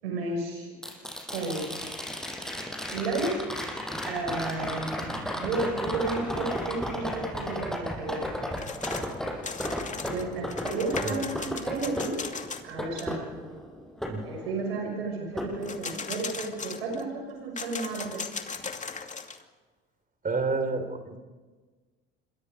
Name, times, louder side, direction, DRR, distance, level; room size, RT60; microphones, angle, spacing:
voice 1, 0.0-0.7 1.3-1.7 2.9-3.4 4.1-5.1 5.3-8.3 10.0-12.2 12.6-13.3 14.2-18.2, right 3 dB, 90° right, 1 dB, 6.3 m, -32 dB
sound 1, 0.8-14.9 15.4-16.4 18.6-18.7, equal, ahead, 6.7 m, -35 dB
sound 2, 8.6-9.2 9.4-12.7 13.0-13.1 15.6-17.0 17.6-19.4, left 5 dB, 25° left, 2.6 m, -37 dB
voice 2, 20.2-21.2, right 4 dB, 30° right, 9 dB, 4.1 m, -29 dB
26.5 x 23.5 x 5.1 m, 1.3 s
hypercardioid pair, 75°, 29 cm